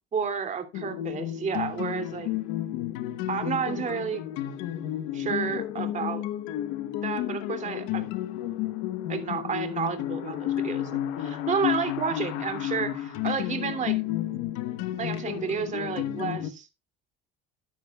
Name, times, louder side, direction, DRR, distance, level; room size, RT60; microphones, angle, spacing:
voice 1, 0.1-2.3 3.3-4.2 5.1-6.2 7.0-8.1 9.1-10.9 11.2-14.0 15.0-16.7, right 6 dB, 35° right, 2.8 m, -31 dB
sound 1, 0.7-16.5, left 12 dB, 80° left, 1.2 m, -31 dB
13.5 x 10.5 x 2.4 m
supercardioid pair, 105°, 21 cm